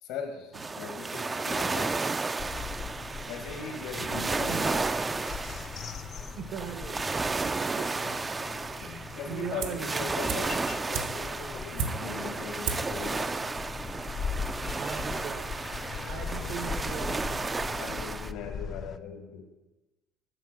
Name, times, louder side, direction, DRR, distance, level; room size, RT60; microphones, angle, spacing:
voice 1, 0.0-2.0 3.3-4.8 8.0-8.2 8.8-13.4 17.8-19.5, left 6 dB, 80° left, 5 dB, 1.8 m, -40 dB
sound 1, 0.5-18.3, right 3 dB, 20° right, 0.3 m, -33 dB
sound 2, 2.4-19.0, left 6 dB, 45° left, 0.5 m, -40 dB
voice 2, 6.3-7.4 7.6-7.9 8.7-10.2 14.6-15.5 16.0-17.4, right 7 dB, 65° right, 10 dB, 0.9 m, -39 dB
sound 3, 9.6-9.9 10.3-12.3 12.6-13.0 13.3-13.4, right 5 dB, 80° right, 1.2 m, -34 dB
9.1 x 6.0 x 7.7 m, 1.1 s
supercardioid pair, 100°, 0 cm